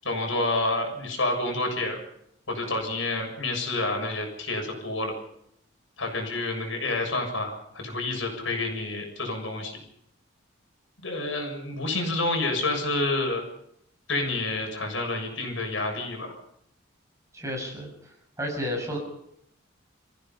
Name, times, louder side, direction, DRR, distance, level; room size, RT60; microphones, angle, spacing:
voice 1, 0.0-2.0 2.5-5.1 6.0-9.8 11.0-13.4 14.1-16.4, left 2 dB, 70° left, 3 dB, 7.1 m, -29 dB
voice 2, 17.3-17.9 18.4-19.0, equal, 15° right, 1 dB, 6.8 m, -31 dB
29.5 x 16.0 x 5.6 m, 0.73 s
head